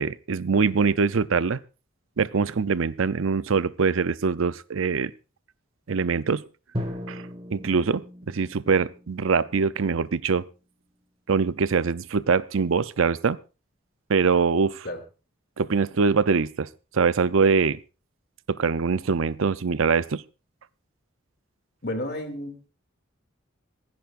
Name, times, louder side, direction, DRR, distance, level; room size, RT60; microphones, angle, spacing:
voice 1, 0.0-1.6 2.2-5.1 5.9-6.4 7.1-7.2 7.5-10.4 11.3-13.4 14.1-14.9 15.6-16.7 16.9-17.8 18.5-20.2, right 5 dB, 80° right, 16 dB, 0.6 m, -23 dB
Drum, 6.7-10.5, equal, 25° right, 1.7 m, -38 dB
voice 2, 21.8-22.7, left 1 dB, 50° left, 5 dB, 2.5 m, -32 dB
26.5 x 10.5 x 2.5 m, 0.32 s
head